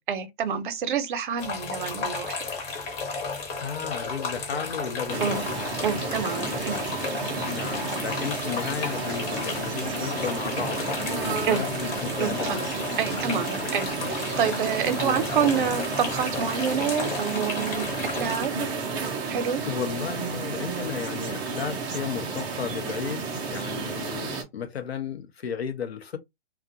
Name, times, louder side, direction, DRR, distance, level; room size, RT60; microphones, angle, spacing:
voice 1, 0.1-2.4 5.2-5.4 5.8-6.8 11.4-11.6 12.2-12.6 13.0-17.9 18.2-18.5 19.3-19.6, right 7 dB, 55° right, 0.6 m, -27 dB
sound 1, 1.4-18.5, left 4 dB, 25° left, 0.8 m, -33 dB
voice 2, 3.6-5.5 6.1-6.7 7.5-12.6 15.0-15.8 19.7-26.2, left 6 dB, 90° left, 0.7 m, -34 dB
sound 2, 5.1-24.4, right 4 dB, 15° right, 0.4 m, -32 dB
2.4 x 2.1 x 2.7 m
hypercardioid pair, 130°, 30 cm